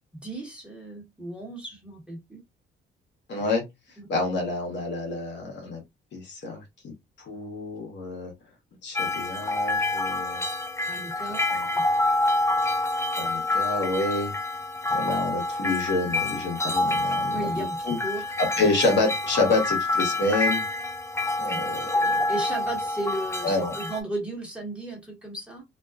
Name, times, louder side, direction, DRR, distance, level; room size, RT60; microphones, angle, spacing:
voice 1, 0.1-2.4 4.0-4.1 10.9-11.4 11.7-11.8 17.3-18.6 21.4-21.7 22.3-25.6, right 1 dB, 5° right, 1.1 m, -35 dB
voice 2, 3.3-3.6 4.1-5.8 6.1-8.3 8.8-10.4 11.5-11.7 13.2-14.3 14.9-18.0 18.4-20.6 21.4-22.2 23.4-23.7, left 2 dB, 60° left, 1.0 m, -28 dB
sound 1, 9.0-24.0, left 2 dB, 15° left, 0.5 m, -27 dB
2.4 x 2.2 x 2.3 m
cardioid pair, 90°, 20 cm